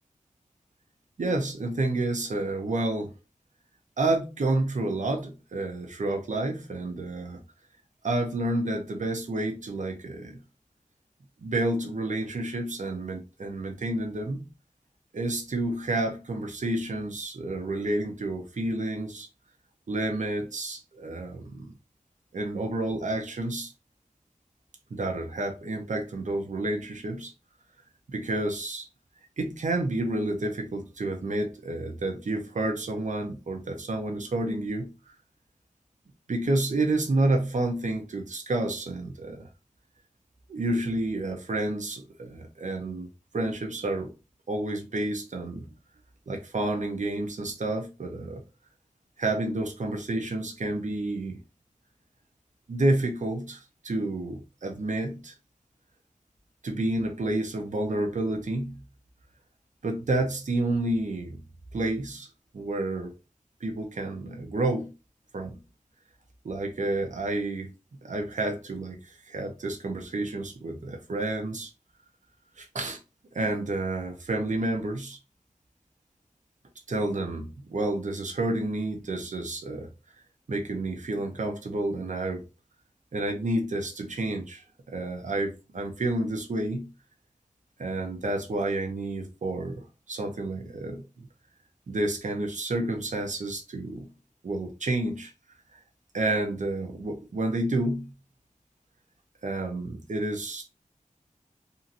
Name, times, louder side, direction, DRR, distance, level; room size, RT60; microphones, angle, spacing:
voice 1, 1.2-3.1 4.0-7.4 8.0-10.4 11.4-14.4 15.1-19.3 19.9-21.7 22.3-23.7 24.9-27.3 28.1-28.9 29.4-34.9 36.3-39.5 40.5-43.1 43.3-44.1 44.5-45.7 46.3-48.4 49.2-51.4 52.7-55.3 56.6-58.8 59.8-61.4 61.7-62.3 62.5-63.1 63.6-64.9 65.3-65.6 66.4-67.7 68.0-71.7 72.6-73.0 73.3-75.2 76.9-79.9 80.5-82.4 83.1-86.9 87.8-91.3 91.9-94.1 94.4-95.3 96.1-98.1 99.4-100.6, right 2 dB, 65° right, 0.7 m, -30 dB
2.8 x 2.6 x 2.5 m
wide cardioid pair, 55°, 14 cm